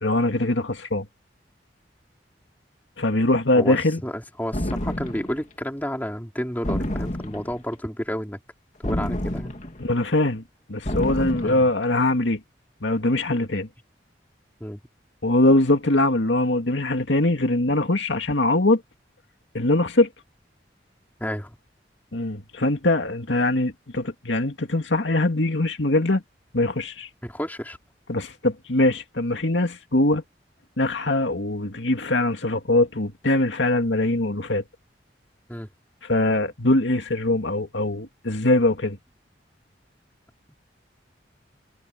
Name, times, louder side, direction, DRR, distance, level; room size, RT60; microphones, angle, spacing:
voice 1, 0.0-1.0 3.0-4.0 9.8-10.4 10.7-12.4 12.8-13.7 15.2-18.8 19.5-20.1 22.1-26.2 26.5-27.1 28.1-30.2 30.8-34.6 36.0-39.0, left 2 dB, 90° left, 2.2 m, -22 dB
voice 2, 4.0-8.4 8.8-9.6 11.4-11.6 14.6-14.8 21.2-21.6 27.2-27.8 35.5-35.7 40.5-40.6, equal, 10° left, 3.9 m, -31 dB
sound 1, 4.5-5.4 6.6-7.6 8.8-9.9 10.9-11.7, left 1 dB, 40° left, 2.4 m, -29 dB
head